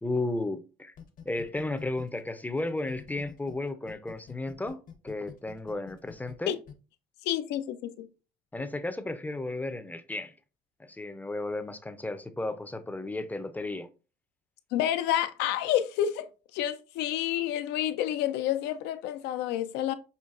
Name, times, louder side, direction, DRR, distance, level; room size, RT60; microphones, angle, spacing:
voice 1, 0.0-0.9 1.3-6.6 8.5-10.3 10.9-13.9, left 2 dB, 10° left, 0.4 m, -34 dB
sound 1, 1.0-3.5 3.9-6.7, left 6 dB, 55° left, 0.8 m, -47 dB
voice 2, 7.2-8.1 14.7-19.9, left 11 dB, 90° left, 0.5 m, -29 dB
5.5 x 2.9 x 2.4 m
cardioid pair, 110°, 17 cm